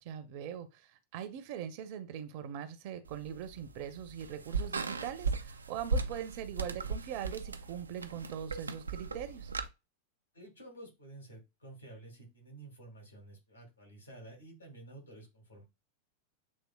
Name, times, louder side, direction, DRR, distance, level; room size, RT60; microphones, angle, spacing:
voice 1, 0.0-9.5, right 9 dB, 45° right, 0.7 m, -41 dB
sound 1, 3.1-9.7, right 4 dB, 75° right, 0.3 m, -37 dB
voice 2, 10.3-15.6, right 2 dB, 80° left, 2.2 m, -51 dB
7.4 x 3.2 x 2.2 m
figure-of-eight pair, 90°, 0 cm